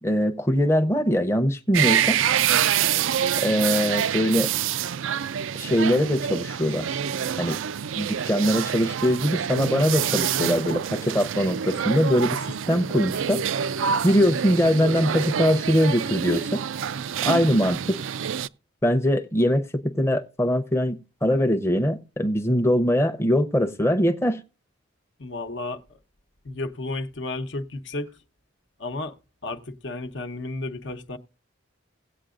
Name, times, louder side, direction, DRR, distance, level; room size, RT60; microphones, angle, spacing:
voice 1, 0.0-2.2 3.4-4.5 5.5-6.9 7.4-7.6 8.0-12.4 12.7-13.4 14.0-16.6 17.2-18.0 18.8-24.4, equal, 15° left, 0.7 m, -22 dB
sound 1, 1.7-18.5, right 8 dB, 85° right, 0.4 m, -26 dB
voice 2, 25.2-26.0 26.4-28.1 28.8-29.1 29.4-31.2, left 2 dB, 65° left, 0.9 m, -32 dB
17.5 x 8.4 x 2.5 m
head